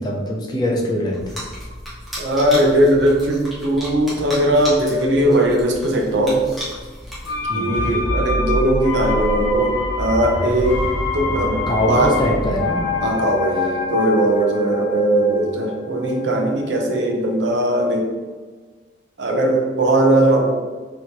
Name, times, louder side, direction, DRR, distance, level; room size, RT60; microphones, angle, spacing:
voice 1, 0.0-1.4 7.5-7.9 11.7-12.8, left 1 dB, 20° left, -2 dB, 0.6 m, -22 dB
sound 1, 1.1-7.7, equal, ahead, 1.1 m, -34 dB
voice 2, 2.2-6.4 7.5-10.8 11.1-12.1 13.0-18.1 19.2-20.6, right 1 dB, 60° right, 1 dB, 0.6 m, -19 dB
sound 2, 7.3-17.0 17.3-17.4, left 4 dB, 85° left, 0.5 m, -27 dB
sound 3, 7.7-13.9, equal, 35° right, 0.9 m, -27 dB
4.2 x 3.0 x 2.8 m, 1.4 s
head